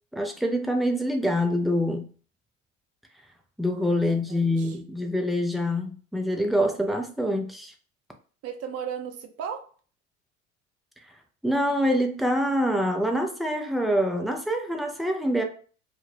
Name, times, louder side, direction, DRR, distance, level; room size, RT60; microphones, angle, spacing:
voice 1, 0.1-2.1 3.6-7.7 11.4-15.4, equal, ahead, 0.4 m, -25 dB
voice 2, 3.8-4.8 8.4-9.7, right 7 dB, 40° right, 0.6 m, -36 dB
2.6 x 2.3 x 3.2 m
hypercardioid pair, 70°, 39 cm